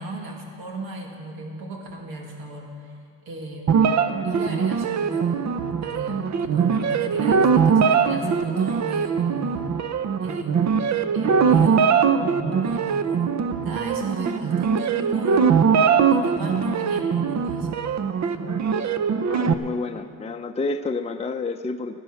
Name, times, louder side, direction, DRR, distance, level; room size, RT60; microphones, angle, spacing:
voice 1, 0.0-2.9 3.3-4.0 4.2-5.4 5.8-9.7 10.2-10.8 11.1-11.9 12.2-13.3 13.6-15.8 16.1-17.8, right 2 dB, 80° right, 0 dB, 2.2 m, -35 dB
sound 1, 3.7-19.5, right 6 dB, 50° right, 0.8 m, -21 dB
voice 2, 19.3-22.0, left 3 dB, 20° left, 6 dB, 0.6 m, -29 dB
15.0 x 11.0 x 6.4 m, 2.4 s
supercardioid pair, 70°, 35 cm